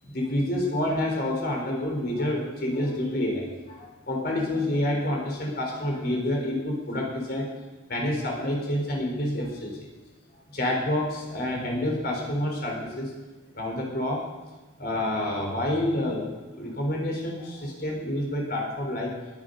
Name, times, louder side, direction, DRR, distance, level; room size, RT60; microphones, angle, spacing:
voice 1, 0.0-7.5 7.9-9.9 10.5-13.1 13.5-14.2 14.8-19.1, left 1 dB, 50° left, 0 dB, 4.0 m, -28 dB
20.5 x 11.5 x 5.4 m, 1.2 s
head